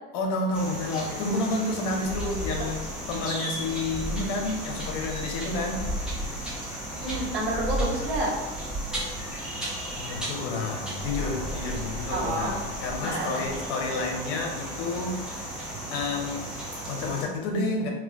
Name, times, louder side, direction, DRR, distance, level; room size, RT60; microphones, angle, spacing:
voice 1, 0.1-6.0 9.2-9.4 10.0-17.9, left 2 dB, 65° left, 1 dB, 0.8 m, -30 dB
sound 1, 0.5-17.2, right 1 dB, 5° right, 0.9 m, -34 dB
voice 2, 6.9-8.3 12.1-12.5 13.0-13.4, right 1 dB, 35° right, -6 dB, 1.3 m, -29 dB
2.5 x 2.4 x 3.4 m, 1.2 s
hypercardioid pair, 95°, 29 cm